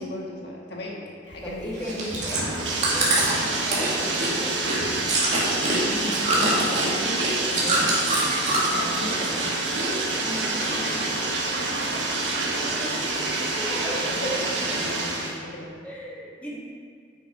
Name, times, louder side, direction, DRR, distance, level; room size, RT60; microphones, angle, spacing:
voice 1, 0.0-1.7 5.3-8.0 8.7-9.4 14.2-14.3 14.7-15.7, left 1 dB, 65° left, -2 dB, 1.5 m, -36 dB
Bathtub (filling or washing), 1.3-15.4, right 3 dB, 80° right, 1.3 m, -27 dB
voice 2, 1.4-5.3 8.6-8.9 10.2-12.1 12.4-14.5 15.8-16.6, equal, 10° left, -6 dB, 1.6 m, -37 dB
Chewing mastication, 1.8-8.8 9.1-9.9 10.1-11.1 11.5-11.6, right 2 dB, 40° right, 2.0 m, -25 dB
8.9 x 6.1 x 4.8 m, 2.1 s
head